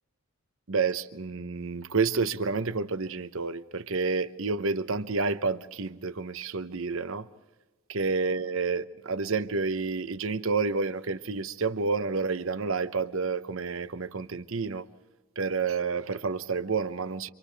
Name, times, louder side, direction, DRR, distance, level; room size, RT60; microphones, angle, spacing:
voice 1, 0.7-7.3 7.9-14.9 15.4-17.3, right 4 dB, 60° right, 0.8 m, -29 dB
30.0 x 27.0 x 3.4 m
head